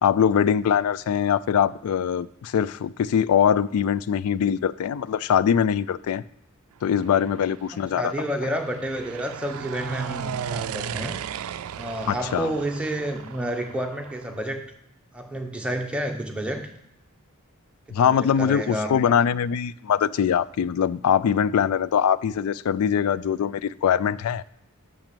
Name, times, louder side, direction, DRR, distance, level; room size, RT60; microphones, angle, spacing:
voice 1, 0.0-6.2 6.8-8.1 12.1-12.5 17.9-24.4, left 8 dB, 90° left, 18 dB, 0.3 m, -22 dB
sound 1, 6.9-14.4, right 8 dB, 80° right, 0.4 m, -36 dB
voice 2, 7.7-11.2 11.8-14.6 15.1-16.7 18.0-19.2, right 1 dB, 5° right, 2 dB, 0.9 m, -30 dB
6.4 x 5.9 x 6.8 m, 0.81 s
head